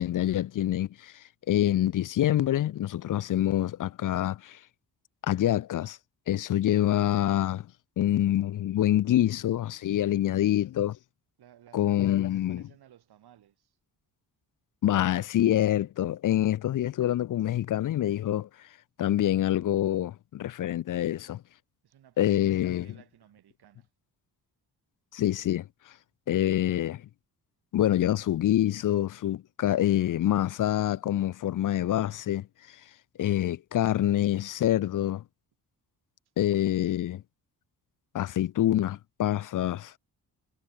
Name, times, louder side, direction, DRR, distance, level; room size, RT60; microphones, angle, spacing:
voice 1, 0.0-4.6 5.2-6.0 6.3-7.7 8.0-11.0 11.7-12.6 14.8-18.5 19.0-21.4 22.2-22.9 25.1-25.7 26.3-27.1 27.7-32.5 33.2-35.2 36.4-37.2 38.1-39.9, left 12 dB, 55° left, 0.6 m, -26 dB
voice 2, 10.0-10.6 11.4-13.8 21.8-23.9, right 11 dB, 80° right, 5.3 m, -58 dB
wide cardioid pair, 180°, 38 cm